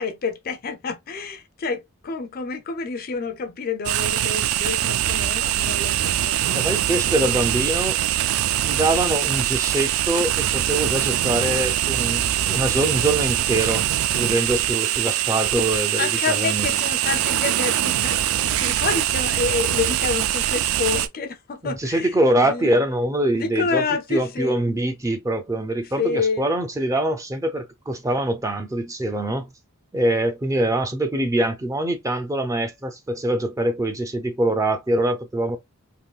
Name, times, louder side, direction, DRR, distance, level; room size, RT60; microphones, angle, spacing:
voice 1, 0.0-7.0 16.0-22.7 23.3-24.6 26.0-26.5, left 4 dB, 45° left, 0.5 m, -28 dB
sound 1, 3.8-21.1, right 12 dB, 85° right, 0.3 m, -23 dB
voice 2, 6.5-8.0 8.6-13.9 14.1-16.7 21.6-23.8 24.1-29.5 29.9-35.6, right 1 dB, 15° right, 0.5 m, -24 dB
3.6 x 2.6 x 2.3 m
head